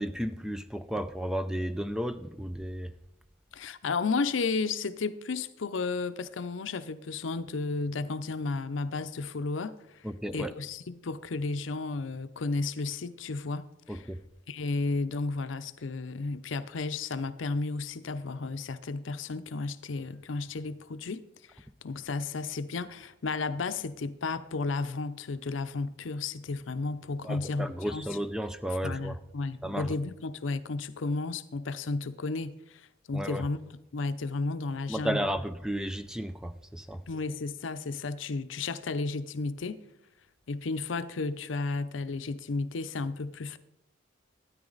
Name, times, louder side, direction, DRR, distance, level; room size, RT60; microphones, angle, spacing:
voice 1, 0.0-2.9 10.0-10.5 13.9-14.2 27.2-29.2 29.6-30.0 33.1-33.5 34.9-37.0, equal, 5° right, 0.4 m, -33 dB
voice 2, 3.5-10.1 10.3-14.1 14.5-21.2 21.5-28.1 28.8-33.6 33.9-35.3 37.1-39.8 40.5-43.6, left 3 dB, 75° left, 0.6 m, -33 dB
13.0 x 9.7 x 3.9 m
head